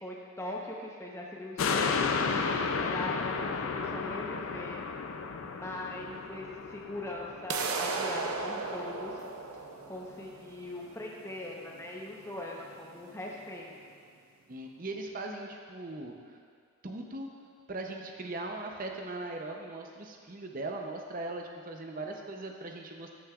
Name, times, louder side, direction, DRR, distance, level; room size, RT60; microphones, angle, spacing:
voice 1, 0.0-2.0 2.8-4.9 5.4-9.1 9.9-13.7 22.1-22.2, left 1 dB, 10° left, -3 dB, 0.8 m, -41 dB
sound 1, 1.6-8.2 8.7-8.8, left 5 dB, 70° left, 0.4 m, -32 dB
sound 2, 7.5-13.5, right 4 dB, 80° right, 0.6 m, -37 dB
voice 2, 14.5-16.1 16.8-17.3 17.7-23.1, right 2 dB, 40° right, 2 dB, 0.6 m, -39 dB
14.0 x 6.4 x 2.4 m, 2.1 s
head